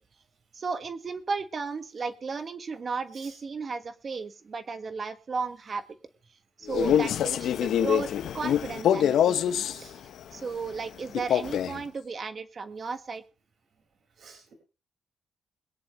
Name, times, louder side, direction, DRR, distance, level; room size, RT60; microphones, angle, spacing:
voice 1, 0.5-5.8 6.6-8.1 8.3-9.8 10.3-13.2, right 4 dB, 45° right, 11 dB, 1.5 m, -34 dB
Male speech man speaking, 6.7-9.8 11.1-11.8, left 9 dB, 80° left, 1.0 m, -25 dB
voice 2, 14.2-14.5, right 5 dB, 60° right, 4 dB, 5.0 m, -50 dB
21.5 x 10.0 x 3.1 m, 0.32 s
cardioid pair, 85°, 0 cm